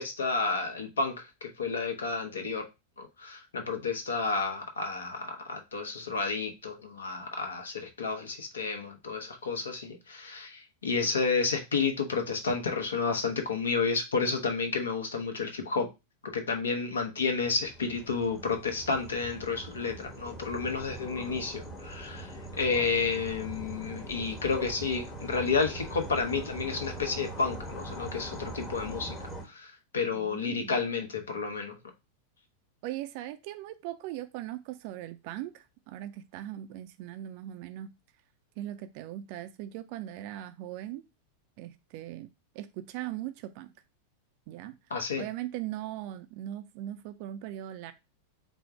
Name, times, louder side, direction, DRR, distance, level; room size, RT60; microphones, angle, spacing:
voice 1, 0.0-2.7 3.0-15.9 16.2-29.2 29.5-31.8 44.9-45.2, left 4 dB, 70° left, 0.8 m, -31 dB
sound 1, 17.3-29.4, right 1 dB, 20° left, 0.9 m, -42 dB
voice 2, 30.1-30.8 32.8-37.9 38.6-41.0 41.6-42.3 42.5-43.7 44.5-44.8 45.2-47.9, right 13 dB, 45° right, 0.3 m, -39 dB
4.4 x 2.0 x 4.6 m
figure-of-eight pair, 90°, 0 cm